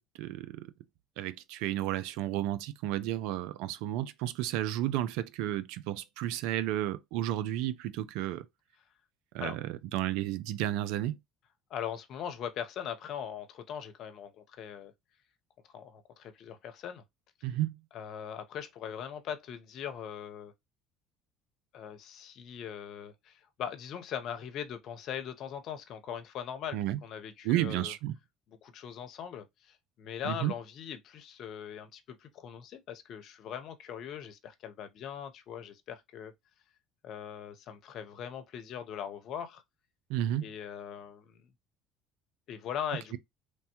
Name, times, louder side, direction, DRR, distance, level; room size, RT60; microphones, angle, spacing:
voice 1, 0.2-0.6 1.2-8.5 9.3-11.2 17.4-17.7 26.7-27.0 27.4-28.2 30.2-30.5 40.1-40.5, right 13 dB, 70° right, 0.3 m, -32 dB
voice 2, 11.7-14.9 15.7-17.0 17.9-20.5 21.7-27.9 28.6-36.3 37.0-39.6 40.4-41.4 42.5-43.2, left 9 dB, 60° left, 0.6 m, -40 dB
3.2 x 2.2 x 2.8 m
hypercardioid pair, 70°, 0 cm